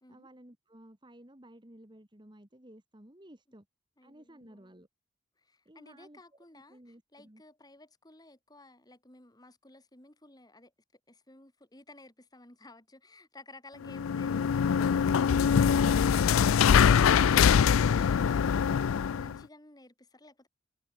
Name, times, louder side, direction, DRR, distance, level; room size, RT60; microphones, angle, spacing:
voice 1, 0.1-3.7 4.0-4.9 5.7-6.2 6.7-7.4, right 1 dB, 20° right, 1.9 m, -54 dB
voice 2, 4.0-4.8 5.4-10.7 11.1-18.6 19.0-20.5, left 2 dB, 20° left, 2.4 m, -55 dB
sound 1, 13.8-19.4, left 7 dB, 85° left, 0.4 m, -23 dB
head